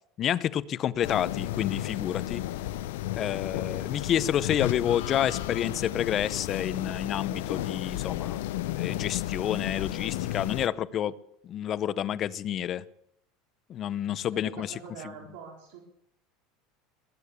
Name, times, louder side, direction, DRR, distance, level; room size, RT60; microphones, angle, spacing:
voice 1, 0.2-2.4 3.1-8.4 8.8-11.1 11.4-12.8 13.7-14.7, left 10 dB, 30° left, 17 dB, 0.6 m, -29 dB
sound 1, 1.0-10.7, left 14 dB, 90° left, 0.7 m, -33 dB
voice 2, 14.3-15.8, right 6 dB, 75° right, 0 dB, 3.9 m, -44 dB
20.5 x 8.5 x 8.2 m, 0.74 s
cardioid pair, 155°, 0 cm